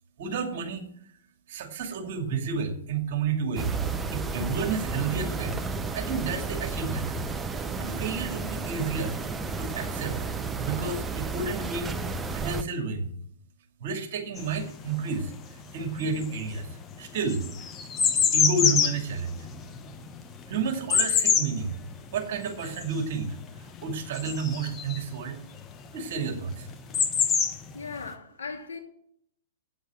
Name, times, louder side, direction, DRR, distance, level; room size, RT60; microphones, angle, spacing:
voice 1, 0.2-0.9 1.5-5.7 5.9-7.1 7.8-10.2 10.5-12.0 12.3-13.1 13.8-15.3 15.7-17.5 18.3-19.5 20.5-21.8 22.1-25.4 25.9-26.7, right 5 dB, 50° right, 2.4 m, -31 dB
sound 1, 3.6-12.6, right 4 dB, 15° right, 0.7 m, -32 dB
sound 2, 14.4-15.5 15.8-25.1 26.2-26.3 26.5-28.1, left 7 dB, 20° left, 1.0 m, -26 dB
voice 2, 27.7-28.8, left 4 dB, 70° left, 2.8 m, -38 dB
8.5 x 8.0 x 8.9 m
figure-of-eight pair, 115°, 0 cm